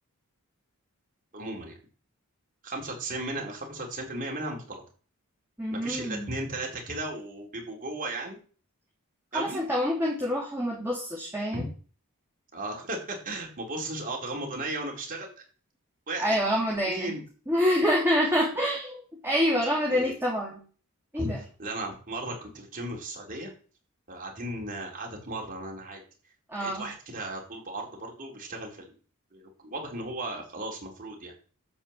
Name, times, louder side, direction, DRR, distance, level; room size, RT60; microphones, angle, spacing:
voice 1, 1.3-1.8 2.6-4.8 5.7-8.4 9.3-9.6 11.5-11.6 12.5-15.4 16.1-16.4 16.8-17.2 19.9-20.1 21.2-21.3 21.6-23.5 24.1-26.0 26.6-28.9 29.3-31.3, right 2 dB, 40° right, 0 dB, 4.6 m, -36 dB
voice 2, 5.6-6.3 9.3-11.7 16.2-17.1 17.5-20.6 21.1-21.4 26.5-26.9, equal, 10° right, -3 dB, 2.9 m, -27 dB
12.5 x 5.7 x 8.5 m, 0.40 s
head